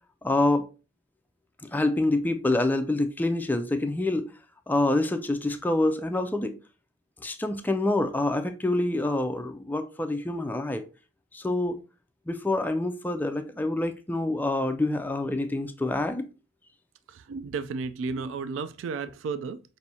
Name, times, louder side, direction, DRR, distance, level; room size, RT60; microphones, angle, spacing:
voice 1, 0.2-0.6 1.7-4.3 4.7-6.5 7.2-10.8 11.3-11.8 12.3-16.2, left 2 dB, 10° left, 0.3 m, -26 dB
voice 2, 17.1-19.6, right 4 dB, 75° right, 0.3 m, -33 dB
5.5 x 2.6 x 2.7 m
head